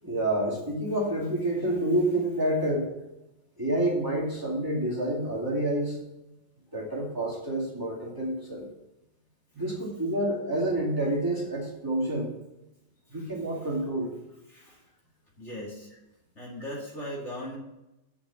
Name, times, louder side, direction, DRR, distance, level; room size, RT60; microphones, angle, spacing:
voice 1, 0.0-2.9 3.6-6.0 6.7-8.7 9.5-12.3 13.1-14.1, right 1 dB, 10° right, -5 dB, 2.3 m, -28 dB
voice 2, 13.1-13.7 14.5-14.9 15.4-15.9 16.3-17.6, equal, 40° left, -4 dB, 2.5 m, -40 dB
7.8 x 5.8 x 7.1 m, 0.94 s
omnidirectional pair, 1.8 m